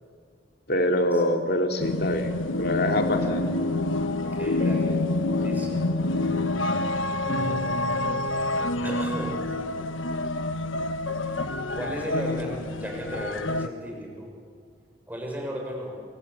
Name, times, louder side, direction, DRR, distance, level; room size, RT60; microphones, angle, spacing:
voice 1, 0.7-3.4, left 1 dB, 55° left, 4 dB, 2.7 m, -25 dB
sound 1, 1.8-13.7, left 2 dB, 85° left, 1.3 m, -27 dB
voice 2, 4.2-5.0 5.4-5.8 6.2-6.4 7.2-8.2 8.8-9.4 11.7-14.3 15.1-16.0, equal, 10° right, 0 dB, 6.6 m, -35 dB
Keyboard (musical), 4.6-7.0, left 9 dB, 35° left, 1.2 m, -38 dB
28.0 x 23.5 x 8.5 m, 2.1 s
head